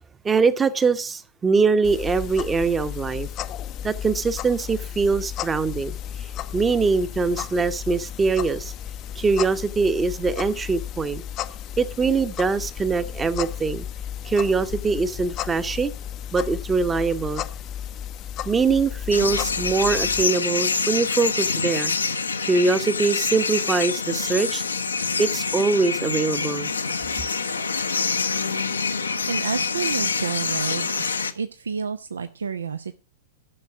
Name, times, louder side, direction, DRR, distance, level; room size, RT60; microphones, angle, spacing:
voice 1, 0.2-3.3 3.8-8.7 9.2-11.2 11.8-13.9 14.2-15.9 16.3-17.4 18.4-21.9 22.4-24.6 25.2-26.7, right 4 dB, 15° right, 0.9 m, -23 dB
sound 1, 1.8-20.2, left 10 dB, 35° left, 0.6 m, -34 dB
sound 2, 19.1-31.3, left 5 dB, 80° left, 0.8 m, -26 dB
voice 2, 29.3-30.9 31.3-33.0, right 6 dB, 75° right, 0.5 m, -29 dB
12.0 x 6.3 x 5.8 m
figure-of-eight pair, 100°, 0 cm